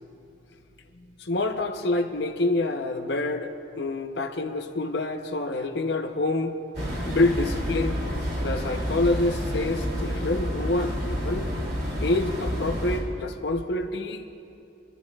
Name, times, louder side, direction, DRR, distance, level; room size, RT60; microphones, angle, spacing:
voice 1, 1.2-6.5 7.1-8.0 8.4-11.5 12.0-14.2, left 2 dB, 65° left, 6 dB, 0.8 m, -27 dB
sound 1, 6.7-13.0, equal, 65° right, 2.7 m, -29 dB
23.5 x 13.0 x 2.4 m, 2.7 s
head